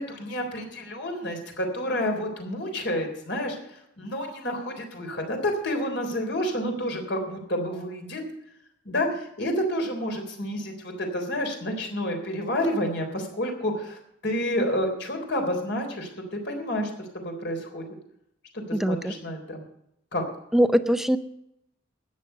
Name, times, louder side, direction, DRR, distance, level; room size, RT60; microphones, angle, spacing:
voice 1, 0.0-8.2 8.9-17.9 18.5-19.6 20.1-20.3, equal, 60° left, 3 dB, 3.6 m, -29 dB
voice 2, 18.7-19.1 20.5-21.2, equal, ahead, 11 dB, 0.6 m, -22 dB
13.5 x 9.7 x 6.7 m, 0.80 s
head